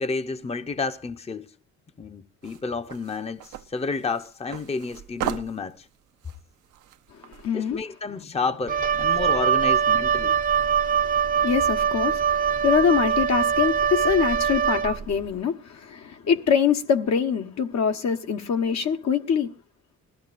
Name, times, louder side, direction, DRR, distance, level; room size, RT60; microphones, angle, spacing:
voice 1, 0.0-1.5 2.0-5.9 7.5-10.4, left 4 dB, 20° left, 0.8 m, -30 dB
sound 1, 2.4-7.5, right 11 dB, 80° right, 0.8 m, -37 dB
voice 2, 7.3-7.8 11.1-19.5, left 7 dB, 65° left, 1.3 m, -24 dB
Wind instrument woodwind instrument, 8.7-15.2, right 7 dB, 25° right, 0.6 m, -23 dB
20.0 x 14.0 x 2.5 m
cardioid pair, 90°, 30 cm